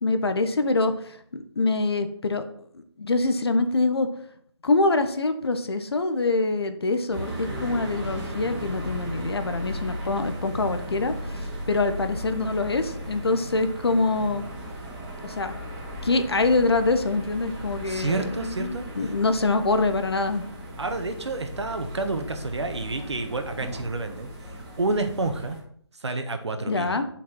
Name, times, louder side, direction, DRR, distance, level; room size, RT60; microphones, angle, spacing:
voice 1, 0.0-2.4 3.0-4.1 4.6-14.4 15.2-15.5 16.0-20.5 26.7-27.0, left 3 dB, 60° left, 9 dB, 1.3 m, -25 dB
sound 1, 7.1-25.6, equal, 15° right, 1.6 m, -36 dB
voice 2, 17.9-19.1 20.8-24.3 24.6-25.6 26.0-27.0, right 3 dB, 70° right, 6 dB, 1.6 m, -29 dB
9.7 x 6.1 x 4.5 m, 0.64 s
figure-of-eight pair, 165°, 15 cm